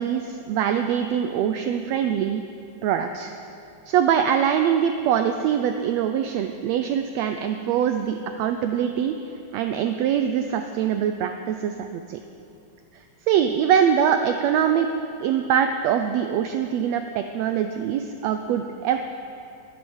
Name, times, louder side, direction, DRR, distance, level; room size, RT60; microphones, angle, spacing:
voice 1, 0.0-2.4 2.8-3.3 3.9-12.2 13.3-14.9 15.2-19.0, right 8 dB, 80° right, 7 dB, 1.5 m, -23 dB
12.0 x 12.0 x 7.1 m, 2.5 s
omnidirectional pair, 3.6 m